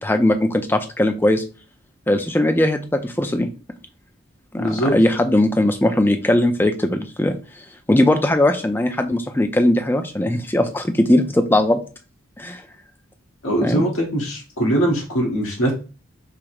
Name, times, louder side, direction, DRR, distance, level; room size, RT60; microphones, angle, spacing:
voice 1, 0.0-1.4 2.1-3.5 4.5-7.6 7.9-11.8 12.4-12.6 13.6-13.8, left 1 dB, 10° left, 7 dB, 0.4 m, -19 dB
voice 2, 4.6-4.9 13.4-15.7, right 1 dB, 85° left, -1 dB, 1.4 m, -21 dB
5.0 x 2.0 x 4.6 m, 0.34 s
head